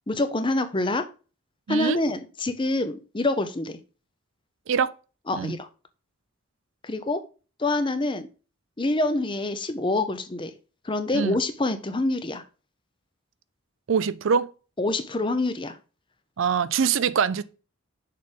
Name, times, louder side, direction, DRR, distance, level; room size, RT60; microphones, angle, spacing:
voice 1, 0.1-1.1 1.7-3.8 5.3-5.7 6.8-7.2 7.6-8.3 8.8-10.5 10.8-12.4 14.8-15.8, left 2 dB, 25° left, 0.6 m, -26 dB
voice 2, 1.7-2.0 4.7-4.9 5.4-5.6 11.1-11.4 13.9-14.5 16.4-17.4, right 6 dB, 65° right, 0.4 m, -23 dB
6.6 x 3.5 x 5.1 m
head